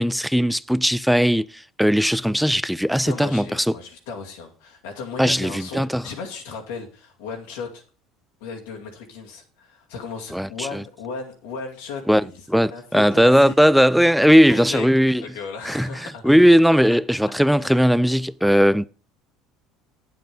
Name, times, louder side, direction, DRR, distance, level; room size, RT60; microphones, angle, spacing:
voice 1, 0.0-3.7 5.2-6.0 10.3-10.8 12.1-15.2 15.6-18.9, equal, ahead, 0.4 m, -18 dB
voice 2, 3.0-7.8 8.4-12.4 12.7-13.6 14.3-16.2 17.6-17.9, left 5 dB, 80° left, 2.3 m, -36 dB
8.7 x 7.7 x 5.2 m
hypercardioid pair, 80°, 0 cm